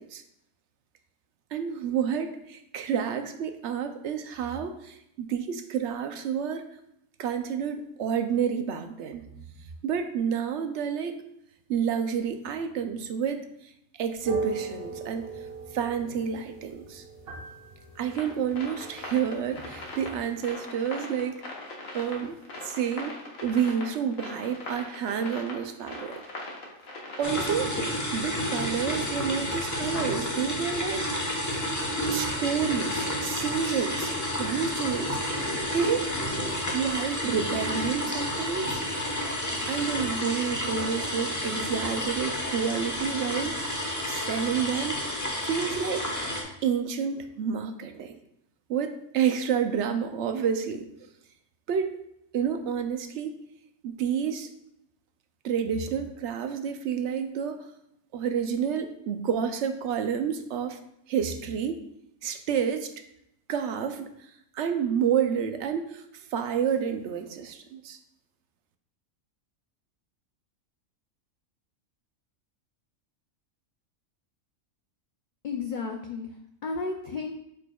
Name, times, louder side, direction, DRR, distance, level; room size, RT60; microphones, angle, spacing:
voice 1, 1.5-6.6 7.2-9.2 9.8-11.1 11.7-13.4 14.0-15.3 15.7-17.0 18.0-21.4 21.9-22.4 22.6-23.1 23.4-26.2 27.2-27.7 28.1-31.1 31.5-31.7 32.1-34.1 34.4-35.2 35.7-36.1 36.7-38.8 39.7-45.0 45.4-46.1 46.6-48.2 48.7-50.9 51.7-51.9 52.3-53.3 53.8-54.5 55.4-57.6 58.1-60.8 61.1-61.8 62.2-62.9 63.5-64.1 64.5-66.0 66.3-68.0, right 7 dB, 65° right, 7 dB, 0.8 m, -29 dB
sound 1, 14.1-20.2, right 4 dB, 50° right, 1.3 m, -38 dB
sound 2, 18.1-27.8, left 2 dB, 75° left, 1.6 m, -40 dB
sound 3, 27.2-46.4, equal, 15° left, 0.9 m, -30 dB
voice 2, 75.4-77.3, left 4 dB, 60° left, 3 dB, 0.5 m, -33 dB
8.4 x 5.0 x 2.3 m, 0.78 s
omnidirectional pair, 1.4 m